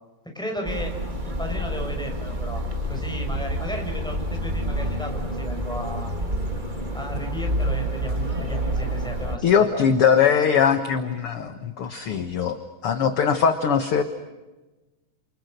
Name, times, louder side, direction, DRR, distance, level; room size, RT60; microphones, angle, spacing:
voice 1, 0.3-0.9 1.2-2.6 2.9-6.1 6.9-9.8, equal, ahead, 2 dB, 6.4 m, -34 dB
sound 1, 0.6-9.4, equal, 15° right, 2.8 m, -28 dB
voice 2, 9.4-12.6 12.8-14.0, left 7 dB, 55° left, 8 dB, 2.0 m, -21 dB
29.5 x 28.5 x 6.8 m, 1.1 s
omnidirectional pair, 3.3 m